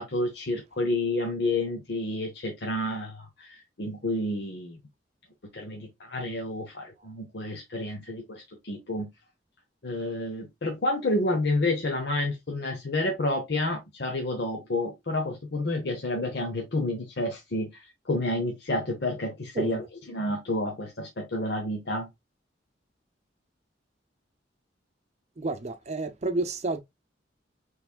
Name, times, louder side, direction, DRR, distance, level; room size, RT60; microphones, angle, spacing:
voice 1, 0.0-4.8 5.5-9.1 9.8-22.1, left 2 dB, 65° left, 0.9 m, -30 dB
voice 2, 25.4-26.8, right 2 dB, 40° right, 0.6 m, -30 dB
5.8 x 3.3 x 2.3 m
head